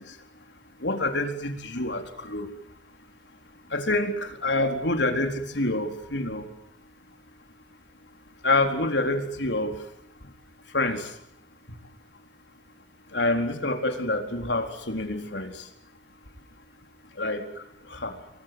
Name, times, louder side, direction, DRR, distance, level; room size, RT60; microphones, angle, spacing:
voice 1, 0.8-2.5 3.7-6.5 8.4-9.8 10.7-11.1 13.1-15.5 17.2-17.5 17.9-18.2, left 2 dB, 80° left, 5 dB, 4.2 m, -27 dB
29.5 x 23.0 x 8.0 m, 0.72 s
head